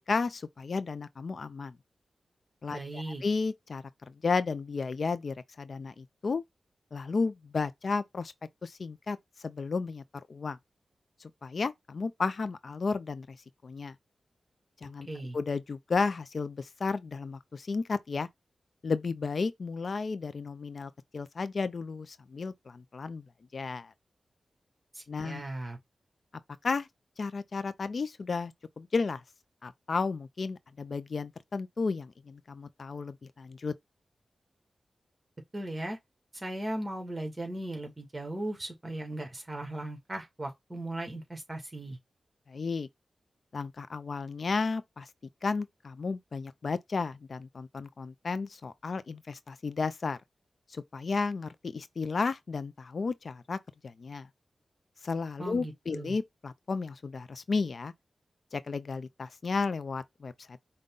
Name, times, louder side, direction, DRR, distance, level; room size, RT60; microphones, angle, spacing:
voice 1, 0.1-1.8 2.6-6.4 6.9-8.3 8.6-10.6 11.2-13.4 13.6-13.9 14.8-15.1 15.3-18.3 18.8-23.2 23.5-23.9 25.1-25.4 26.6-26.9 27.2-29.2 29.6-33.7 42.5-42.9 43.5-45.1 45.4-50.2 50.7-53.6 53.8-54.3 55.0-57.9 58.5-60.6, left 4 dB, 55° left, 0.3 m, -33 dB
voice 2, 2.7-3.2 15.1-15.4 24.9-25.8 35.5-36.0 36.3-42.0 55.4-56.1, right 1 dB, 25° right, 1.5 m, -37 dB
5.2 x 2.2 x 3.6 m
wide cardioid pair, 90°, 0 cm